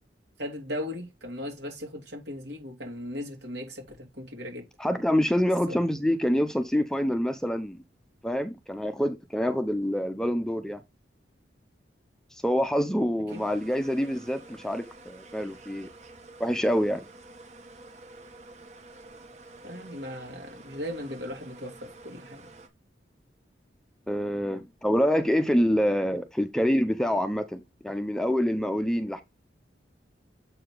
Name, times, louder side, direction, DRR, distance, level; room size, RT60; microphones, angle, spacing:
voice 1, 0.4-4.6 5.7-5.8 13.3-13.4 19.6-22.5, left 1 dB, 70° right, 3.3 m, -37 dB
voice 2, 4.8-7.8 8.2-10.8 12.3-15.9 16.4-17.1 24.1-29.2, equal, 5° left, 0.6 m, -26 dB
sound 1, 13.3-22.7, right 2 dB, 40° right, 1.2 m, -49 dB
7.7 x 4.9 x 3.9 m
head